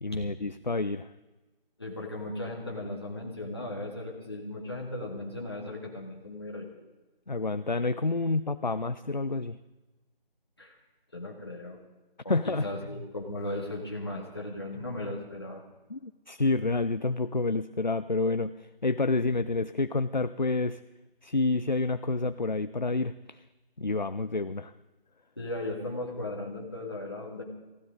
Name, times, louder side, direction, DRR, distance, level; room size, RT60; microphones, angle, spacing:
voice 1, 0.0-1.1 7.3-9.6 12.3-12.7 15.9-20.8 21.2-23.4 23.8-24.7, left 3 dB, 50° left, 13 dB, 0.4 m, -29 dB
voice 2, 1.8-6.7 10.6-10.8 11.1-11.8 12.2-15.6 25.4-27.4, left 1 dB, 25° left, -1 dB, 2.0 m, -37 dB
19.0 x 16.0 x 3.9 m, 1.1 s
figure-of-eight pair, 180°, 29 cm